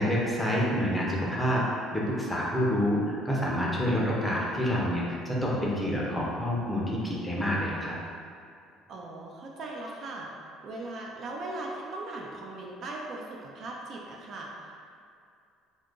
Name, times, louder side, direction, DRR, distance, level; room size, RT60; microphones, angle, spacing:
voice 1, 0.0-7.9, equal, 5° left, -5 dB, 0.6 m, -28 dB
voice 2, 8.9-10.3 10.6-14.7, right 2 dB, 50° right, -2 dB, 0.4 m, -39 dB
2.7 x 2.5 x 3.7 m, 2.4 s
cardioid pair, 135°, 0 cm